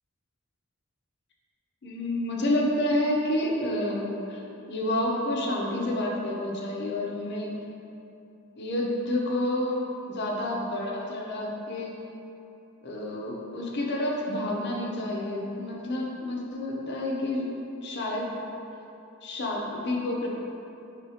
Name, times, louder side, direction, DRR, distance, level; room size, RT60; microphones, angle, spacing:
voice 1, 1.8-4.4 4.7-7.5 8.6-9.8 10.1-11.9 12.8-17.5 17.8-18.3 19.2-20.3, left 1 dB, 55° left, -1 dB, 0.6 m, -29 dB
3.7 x 2.7 x 4.8 m, 2.9 s
head